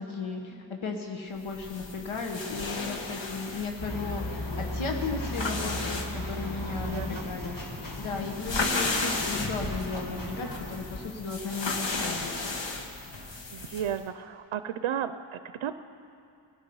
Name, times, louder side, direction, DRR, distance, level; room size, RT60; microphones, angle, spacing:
voice 1, 0.0-12.4, left 4 dB, 85° left, 2 dB, 1.3 m, -35 dB
sound 1, 1.4-14.0, left 3 dB, 65° left, 1.5 m, -35 dB
sound 2, 3.8-11.1, left 1 dB, 45° left, 1.9 m, -36 dB
voice 2, 6.7-7.2 13.5-15.7, right 9 dB, 90° right, 11 dB, 0.6 m, -34 dB
20.0 x 12.0 x 5.4 m, 2.6 s
wide cardioid pair, 70°, 47 cm